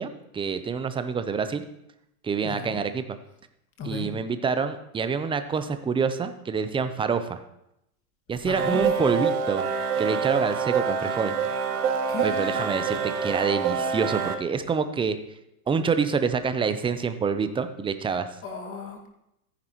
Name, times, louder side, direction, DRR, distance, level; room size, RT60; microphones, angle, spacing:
voice 1, 0.0-1.6 2.2-3.0 3.8-7.4 8.3-9.7 10.0-11.3 12.2-15.2 15.7-18.3, right 5 dB, 10° right, 10 dB, 0.6 m, -27 dB
voice 2, 2.4-2.8 3.8-4.1 8.4-9.3 12.1-12.5 18.4-19.1, left 4 dB, 30° left, 3 dB, 2.1 m, -36 dB
sound 1, 8.6-14.4, right 6 dB, 80° right, 1.2 m, -26 dB
14.0 x 10.0 x 3.1 m, 0.82 s
hypercardioid pair, 110°, 45 cm